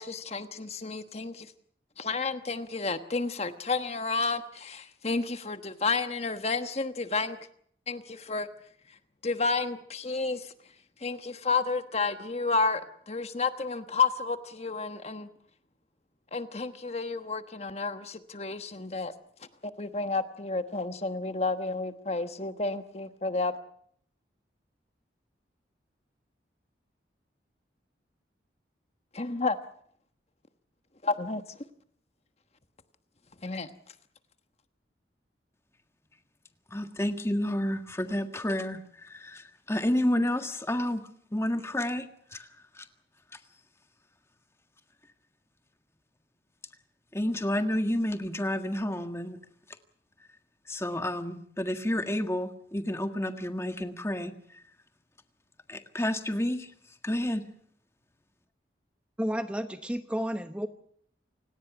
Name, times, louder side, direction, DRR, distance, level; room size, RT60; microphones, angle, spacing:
voice 1, 0.0-1.5 2.0-7.4 7.9-8.5 8.9-9.0 9.2-10.5 11.0-15.3 16.3-19.1 19.4-23.6 29.1-29.6 31.0-31.6 33.4-33.7, left 4 dB, 35° left, 9 dB, 1.2 m, -31 dB
voice 2, 36.7-41.0 41.3-42.5 42.8-42.9 47.1-49.4 50.7-54.3 55.7-56.7 57.0-57.5, left 1 dB, 15° left, 7 dB, 1.7 m, -30 dB
voice 3, 59.2-60.7, equal, 5° right, 8 dB, 0.9 m, -31 dB
28.5 x 18.5 x 6.0 m, 0.63 s
head